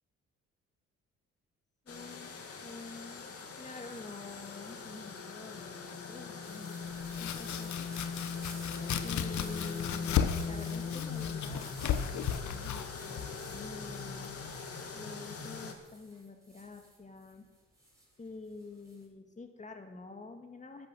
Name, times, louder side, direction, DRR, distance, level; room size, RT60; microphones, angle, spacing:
sound 1, 1.9-15.7, left 5 dB, 50° left, 2.4 m, -40 dB
voice 1, 1.9-2.3 2.6-3.3 3.6-6.8 7.1-7.9 9.0-14.4 14.9-17.5 18.2-20.9, left 3 dB, 25° left, 5 dB, 2.2 m, -48 dB
Leaves Rustling, 6.4-19.1, right 1 dB, 10° right, 6.1 m, -55 dB
Domestic sounds home sounds, 6.8-14.6, left 9 dB, 70° left, 1.1 m, -36 dB
13.5 x 11.0 x 6.5 m, 1.2 s
cardioid pair, 90°, 30 cm